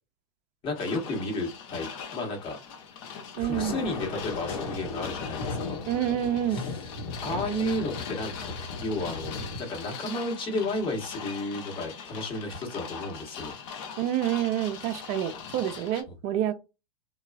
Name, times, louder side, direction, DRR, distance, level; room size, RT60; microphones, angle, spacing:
voice 1, 0.6-2.6 3.4-5.8 6.5-6.9 7.2-8.5 8.8-13.5, left 1 dB, 25° left, 1.2 m, -32 dB
sound 1, 0.8-16.0, left 6 dB, 45° left, 0.7 m, -41 dB
Thunder, 3.4-9.6, left 3 dB, 65° left, 1.1 m, -36 dB
voice 2, 3.4-3.8 5.9-6.6 14.0-16.5, right 11 dB, 35° right, 0.4 m, -28 dB
3.1 x 2.3 x 2.3 m
hypercardioid pair, 115°, 20 cm